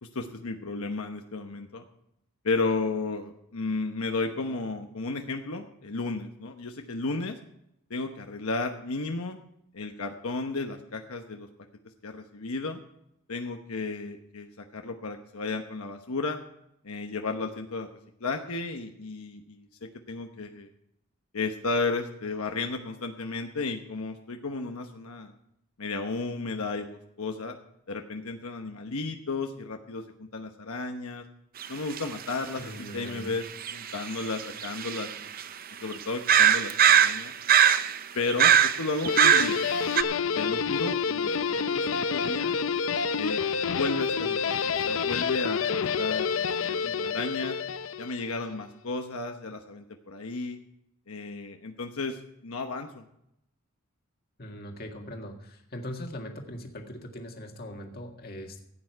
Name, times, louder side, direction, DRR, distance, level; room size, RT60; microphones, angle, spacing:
voice 1, 0.0-1.8 2.4-7.4 7.9-9.4 9.7-11.5 12.0-12.8 13.3-16.4 16.8-17.9 18.2-20.7 21.3-25.3 25.8-27.6 27.9-31.2 31.7-33.4 33.7-35.3 35.8-37.3 38.1-39.6 40.3-42.6 43.2-43.5 43.7-47.6 48.0-50.6 51.1-53.0, left 3 dB, 80° left, 4 dB, 1.1 m, -33 dB
sound 1, 31.6-31.7 32.0-32.1 33.6-35.4 35.9-36.0 36.3-38.0 38.3-39.7 39.9-40.0, right 9 dB, 40° right, 0.6 m, -21 dB
voice 2, 32.6-33.3 54.4-58.6, equal, 45° left, 2 dB, 1.8 m, -40 dB
Guitar, 39.1-48.4, left 6 dB, 65° left, 0.6 m, -28 dB
15.5 x 9.0 x 4.7 m, 0.77 s
head